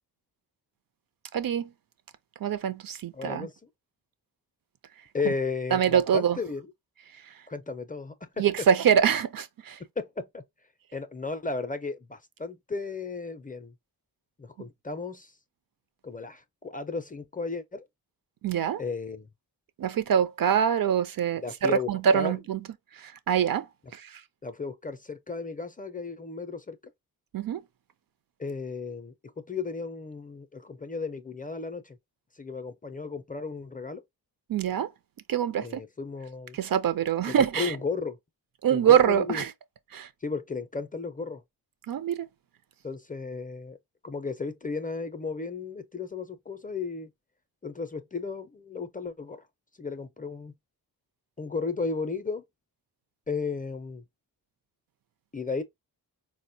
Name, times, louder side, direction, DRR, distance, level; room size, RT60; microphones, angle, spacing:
voice 1, 1.3-1.7 2.4-3.5 5.7-6.4 8.4-9.8 18.4-18.8 19.8-22.6 23.0-23.7 23.9-24.2 27.3-27.6 34.5-34.9 35.3-35.8 36.5-37.8 38.6-39.5 39.9-40.1 41.9-42.2, right 8 dB, 60° right, 0.5 m, -24 dB
voice 2, 3.1-3.7 5.1-6.7 7.5-8.4 10.0-10.4 10.9-13.7 14.4-15.3 16.0-17.9 18.8-19.3 21.4-22.4 24.4-26.8 28.4-32.0 32.4-34.0 35.6-36.6 37.3-38.2 38.7-39.4 40.2-41.4 42.8-43.8 44.0-47.1 47.6-49.4 49.8-50.5 51.4-52.4 53.3-54.0 55.3-55.6, left 4 dB, 20° left, 0.4 m, -34 dB
4.1 x 2.1 x 2.6 m
cardioid pair, 70°, 40 cm